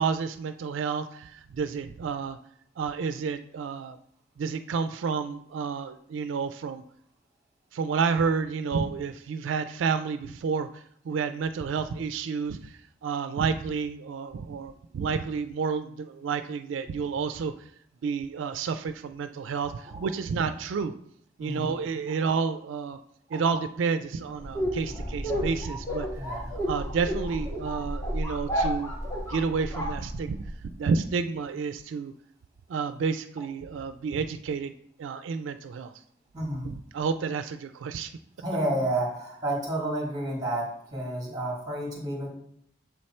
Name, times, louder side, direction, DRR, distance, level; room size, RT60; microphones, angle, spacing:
voice 1, 0.0-2.4 2.8-4.0 4.4-6.8 7.7-10.7 11.1-12.6 13.0-17.5 18.0-20.9 21.4-23.0 23.3-26.1 26.7-28.9 29.3-30.4 30.8-32.1 32.7-34.7 35.0-35.9 36.7-38.1, right 5 dB, 85° right, 10 dB, 0.3 m, -30 dB
voice 2, 21.4-21.7 26.1-26.5 36.3-36.7 38.4-42.3, right 1 dB, 20° right, -1 dB, 1.7 m, -30 dB
sound 1, 24.4-30.6, equal, 15° left, 1.1 m, -31 dB
6.8 x 3.2 x 4.2 m, 0.71 s
head